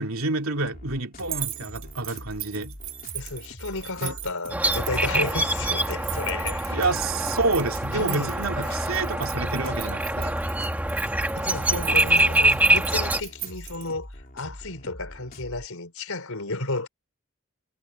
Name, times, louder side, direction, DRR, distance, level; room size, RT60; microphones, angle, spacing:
voice 1, 0.0-2.7 4.0-4.1 6.7-10.4 11.7-12.0, right 3 dB, 75° right, 2.6 m, -28 dB
sound 1, 0.6-15.7, left 1 dB, 40° left, 4.0 m, -44 dB
sound 2, 1.2-13.9, right 13 dB, 60° right, 2.3 m, -38 dB
voice 2, 3.1-7.0 7.9-9.1 11.3-16.9, left 3 dB, 80° left, 4.2 m, -33 dB
sound 3, 4.5-13.2, right 1 dB, 5° right, 1.5 m, -25 dB
head